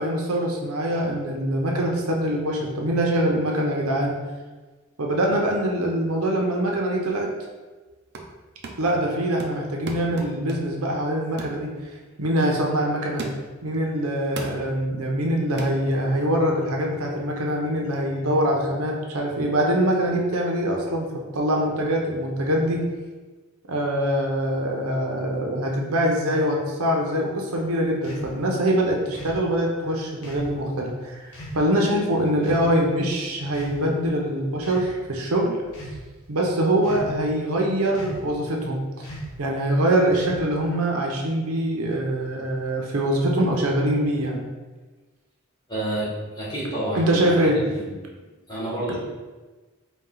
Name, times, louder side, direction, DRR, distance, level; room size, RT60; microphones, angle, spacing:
voice 1, 0.0-4.2 5.0-7.3 8.8-11.7 12.2-13.2 13.6-21.1 21.3-22.8 23.7-35.6 36.3-39.1 39.4-44.4 46.9-47.6, right 1 dB, 80° right, 0 dB, 0.7 m, -23 dB
sound 1, 7.9-8.4 8.6-9.0 9.4-10.8 11.4-11.6 12.1-12.3 13.2-13.6 14.4-14.7 15.6-15.8, right 3 dB, 50° right, 0.4 m, -37 dB
sound 2, 28.0-28.3 29.1-29.4 30.2-30.5 31.3-31.6 32.4-32.7 33.5-34.1 34.6-34.9 35.6-36.0 36.8-37.3 37.9-38.3 39.0-39.4 40.1-40.6, right 1 dB, 75° left, 0.9 m, -37 dB
voice 2, 45.7-47.3 47.8-47.9 48.5-48.9, right 1 dB, 20° left, -8 dB, 1.2 m, -29 dB
4.3 x 2.3 x 3.8 m, 1.3 s
head